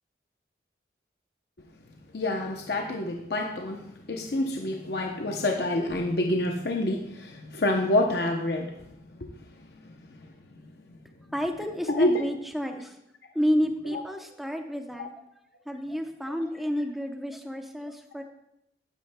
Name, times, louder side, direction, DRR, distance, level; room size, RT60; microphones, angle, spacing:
voice 1, 2.1-8.8 9.2-10.3 10.9-11.0 11.9-12.2 13.9-14.0 16.3-16.4, left 1 dB, 60° left, 2 dB, 0.7 m, -28 dB
voice 2, 11.3-12.9 13.3-15.1 15.7-18.2, equal, ahead, 4 dB, 0.7 m, -30 dB
11.0 x 9.8 x 2.2 m, 0.83 s
head